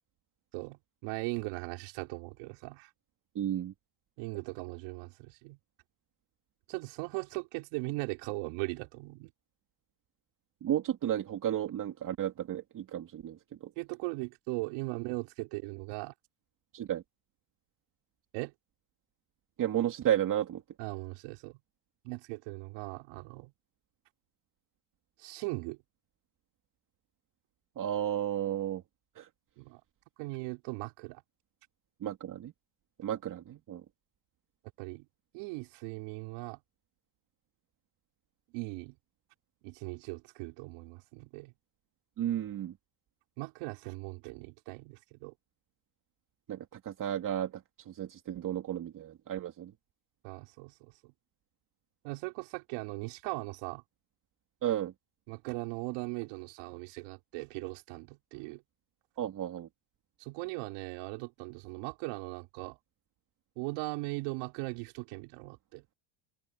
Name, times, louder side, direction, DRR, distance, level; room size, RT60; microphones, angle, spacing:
voice 1, 0.5-2.9 4.2-5.6 6.7-9.3 13.8-16.1 18.3-18.5 20.8-21.6 22.0-23.5 25.2-25.8 29.6-29.8 30.2-31.2 34.8-35.1 35.3-36.6 38.5-38.9 39.6-41.5 43.4-45.3 50.2-51.1 52.0-53.8 55.3-58.6 60.2-62.8 63.6-65.8, right 25 dB, 80° right, 5.1 m, -39 dB
voice 2, 3.3-3.7 10.6-13.7 16.7-17.0 19.6-20.6 27.8-28.8 29.1-29.3 32.0-32.5 33.0-33.8 42.2-42.8 46.5-49.7 54.6-54.9 59.2-59.7, right 11 dB, 40° right, 2.5 m, -33 dB
cardioid pair, 135°, 49 cm